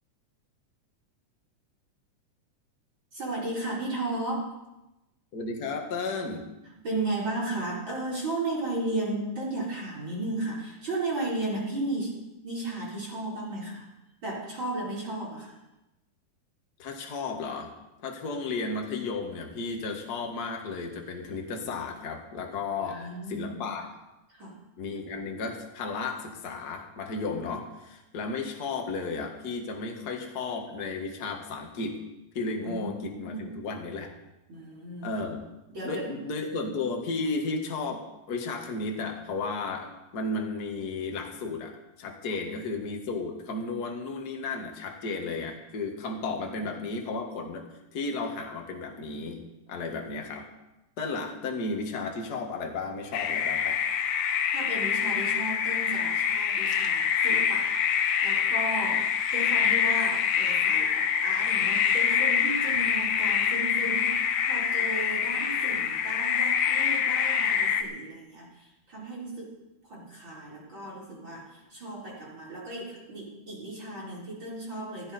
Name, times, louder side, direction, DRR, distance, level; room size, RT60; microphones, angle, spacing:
voice 1, 3.1-4.6 6.8-13.9 14.2-15.6 22.8-23.6 24.3-24.6 32.6-33.6 34.5-35.1 35.7-36.1 42.2-42.4 46.5-46.7 54.5-57.8 58.2-64.2 64.5-69.6 69.8-75.1, right 2 dB, 35° right, -6 dB, 4.8 m, -35 dB
voice 2, 5.3-6.5 16.8-17.7 18.0-23.9 24.8-32.0 32.3-34.1 35.0-35.4 35.8-47.7 47.9-49.4 49.7-50.5 51.0-53.8, left 3 dB, 35° left, 2 dB, 1.9 m, -34 dB
sound 1, 53.1-67.8, left 7 dB, 65° left, 1.4 m, -25 dB
15.0 x 15.0 x 4.4 m, 0.96 s
omnidirectional pair, 3.5 m